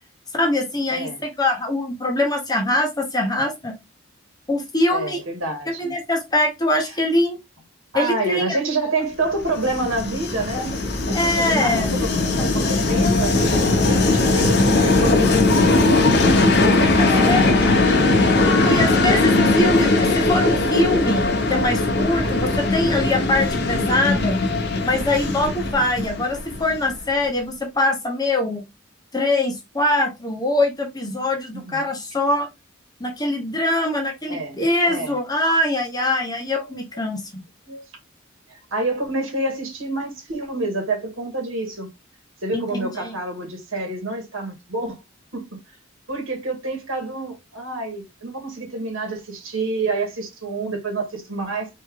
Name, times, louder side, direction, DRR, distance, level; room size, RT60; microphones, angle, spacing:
voice 1, 0.3-3.7 4.5-5.2 5.8-7.4 7.9-8.6 11.1-11.9 17.0-17.5 18.4-19.9 20.1-24.4 24.8-28.6 29.1-32.5 33.0-37.4 42.5-43.2, left 1 dB, 20° left, 1.1 m, -23 dB
voice 2, 0.9-1.2 4.9-5.9 7.9-10.7 11.1-12.0 12.4-18.0 31.7-31.9 34.3-35.1 36.6-36.7 37.7-37.8 38.5-41.9 42.4-45.0 45.3-45.6 46.1-51.7, right 2 dB, 85° right, 2.3 m, -28 dB
Train, 9.4-27.1, left 2 dB, 55° left, 1.1 m, -19 dB
4.3 x 3.2 x 3.6 m
head